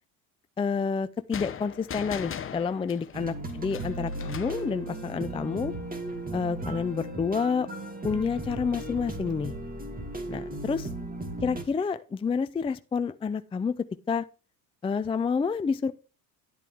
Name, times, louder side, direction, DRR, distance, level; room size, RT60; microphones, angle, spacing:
voice 1, 0.6-5.7 6.3-7.7 8.0-9.5 10.3-10.9 11.4-14.3 14.8-15.9, left 5 dB, 15° left, 11 dB, 0.4 m, -29 dB
sound 1, 1.3-4.7, left 8 dB, 35° left, 1.0 m, -39 dB
sound 2, 3.1-11.6, right 2 dB, 20° right, 2.2 m, -36 dB
10.5 x 8.2 x 3.5 m, 0.33 s
supercardioid pair, 95°, 38 cm